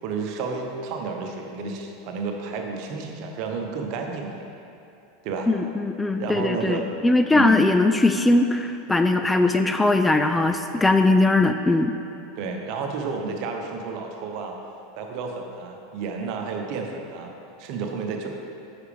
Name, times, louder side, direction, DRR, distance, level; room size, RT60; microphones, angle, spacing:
voice 1, 0.0-4.5 5.2-5.5 6.2-6.9 7.3-7.6 12.4-14.6 15.0-17.3 17.6-18.3, right 4 dB, 55° right, 2 dB, 1.0 m, -31 dB
voice 2, 5.5-11.9, left 2 dB, 10° left, 7 dB, 0.4 m, -20 dB
9.5 x 5.9 x 3.5 m, 2.8 s
hypercardioid pair, 90°, 0 cm